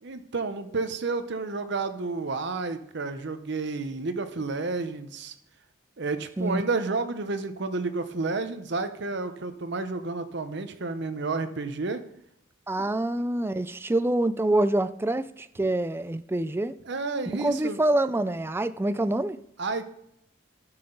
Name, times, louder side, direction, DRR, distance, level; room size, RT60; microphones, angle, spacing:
voice 1, 0.0-5.3 6.0-12.0 12.8-12.9 16.8-17.8 19.6-19.9, right 3 dB, 60° right, 0.8 m, -31 dB
voice 2, 12.7-16.8 17.3-19.4, right 1 dB, 10° right, 0.3 m, -26 dB
12.0 x 5.8 x 3.8 m
head